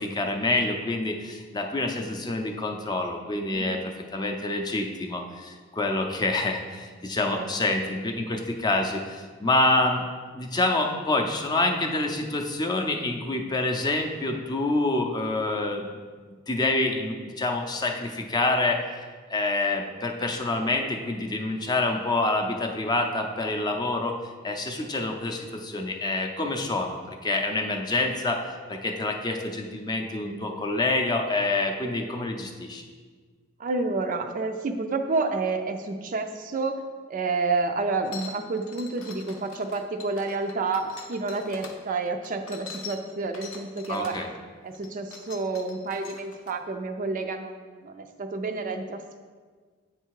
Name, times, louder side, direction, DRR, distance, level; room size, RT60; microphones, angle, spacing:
voice 1, 0.0-3.8 4.1-10.0 10.3-15.8 16.3-19.0 19.3-24.1 24.4-28.4 28.7-32.8 43.9-44.3, left 2 dB, 20° left, 2 dB, 0.5 m, -27 dB
voice 2, 33.6-36.8 37.1-44.2 44.6-49.2, right 3 dB, 40° right, 6 dB, 0.4 m, -29 dB
sound 1, 38.0-41.8 42.2-44.3 44.7-46.5, left 5 dB, 80° left, 0.7 m, -43 dB
8.0 x 3.3 x 4.7 m, 1.5 s
head